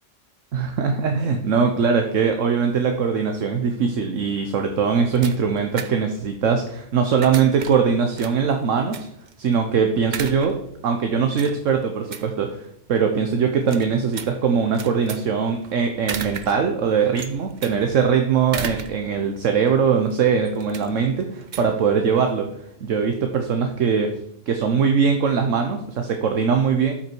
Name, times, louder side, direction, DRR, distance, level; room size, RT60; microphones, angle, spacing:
voice 1, 0.5-9.1 9.4-10.6 10.8-24.1 24.5-26.9, right 6 dB, 65° right, 4 dB, 1.2 m, -21 dB
sound 1, 4.5-22.5, right 6 dB, 45° right, 0.6 m, -37 dB
13.0 x 5.9 x 4.6 m, 0.76 s
omnidirectional pair, 1.4 m